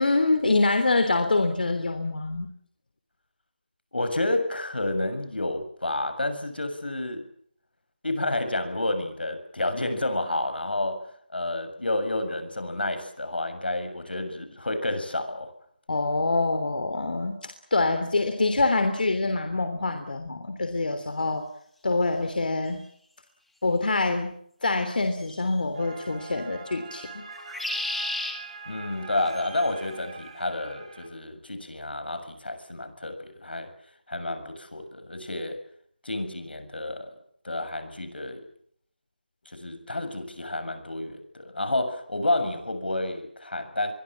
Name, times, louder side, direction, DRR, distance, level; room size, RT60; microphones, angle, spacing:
voice 1, 0.0-2.5 15.9-21.4 21.8-22.8 23.6-24.4 24.6-27.2, left 3 dB, 65° left, 7 dB, 3.3 m, -25 dB
voice 2, 3.9-7.3 8.0-15.5 28.6-33.7 34.1-35.6 36.0-37.2 37.4-38.4 39.4-43.9, left 2 dB, 90° left, 9 dB, 6.9 m, -30 dB
sound 1, 22.7-22.8 25.2-25.6 27.3-28.3 29.3-29.7, left 2 dB, ahead, 1.7 m, -33 dB
sound 2, 25.7-31.1, right 3 dB, 35° right, 6.8 m, -43 dB
27.0 x 23.0 x 7.5 m, 0.65 s
figure-of-eight pair, 170°, 5 cm